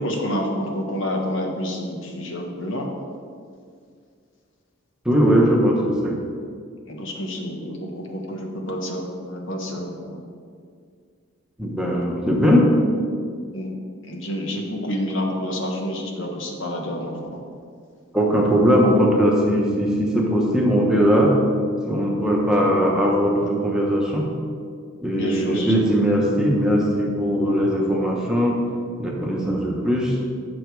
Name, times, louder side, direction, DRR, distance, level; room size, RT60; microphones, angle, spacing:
voice 1, 0.0-2.9 6.9-10.2 13.5-13.7 14.1-17.4 25.1-25.8, equal, 65° left, 1 dB, 1.1 m, -28 dB
voice 2, 5.0-6.2 11.6-12.7 18.1-21.3 21.9-24.3 25.0-28.6 29.0-30.2, equal, 5° right, -3 dB, 0.9 m, -19 dB
8.7 x 6.2 x 4.7 m, 2.2 s
head